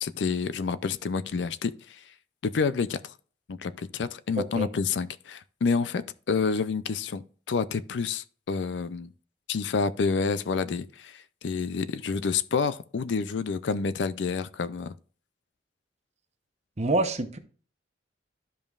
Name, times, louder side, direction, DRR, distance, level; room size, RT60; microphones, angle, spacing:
voice 1, 0.0-2.0 2.4-3.1 3.5-9.1 9.5-14.9, left 5 dB, 80° left, 0.4 m, -29 dB
voice 2, 4.4-4.7 16.8-17.4, right 2 dB, 40° right, 0.8 m, -26 dB
12.5 x 5.3 x 2.4 m
head